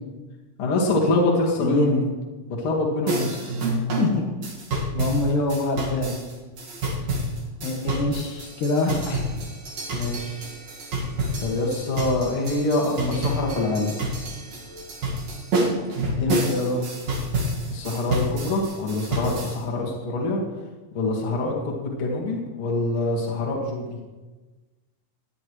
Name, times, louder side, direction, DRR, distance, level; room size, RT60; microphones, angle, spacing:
voice 1, 0.6-2.0 2.6-3.4 9.9-10.4 11.4-14.0 17.7-20.4 20.9-23.8, left 2 dB, 45° left, -3 dB, 2.4 m, -25 dB
voice 2, 1.6-2.0 4.0-4.3 4.9-6.1 7.6-9.2 12.9-13.1 16.1-16.8, left 2 dB, 90° left, 1 dB, 2.9 m, -25 dB
sound 1, 3.1-19.6, right 1 dB, 60° right, 2.9 m, -29 dB
18.0 x 10.5 x 3.1 m, 1.3 s
omnidirectional pair, 3.6 m